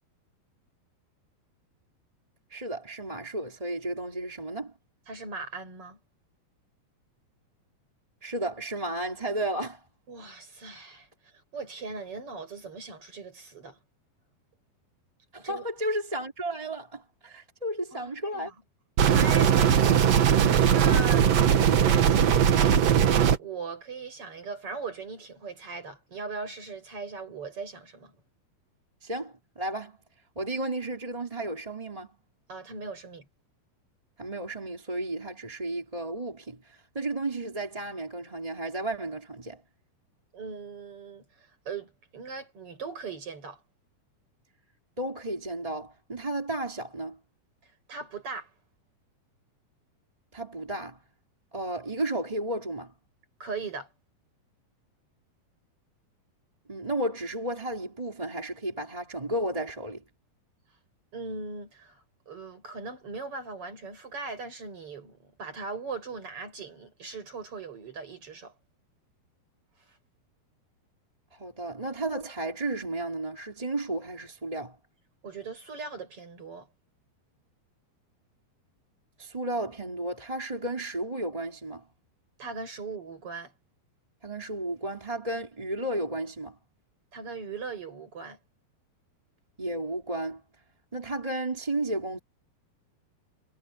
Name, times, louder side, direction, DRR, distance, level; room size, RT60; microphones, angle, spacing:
voice 1, 2.5-4.7 8.2-9.8 15.3-18.5 29.0-30.0 30.3-32.2 34.2-39.6 45.0-47.2 50.3-51.0 51.5-52.9 56.7-60.0 71.3-74.8 79.2-81.8 84.2-86.6 89.6-90.4 90.9-92.2, right 1 dB, 10° right, 2.7 m, -33 dB
voice 2, 5.1-6.0 10.1-13.8 15.4-15.6 17.9-18.5 19.0-20.2 20.7-21.3 21.8-28.1 32.5-33.3 40.3-43.6 47.6-48.5 53.4-53.9 61.1-68.5 75.2-76.7 82.4-83.5 87.1-88.4, right 4 dB, 35° right, 8.1 m, -39 dB
sound 1, 19.0-23.4, right 9 dB, 55° right, 2.0 m, -20 dB
omnidirectional pair, 4.4 m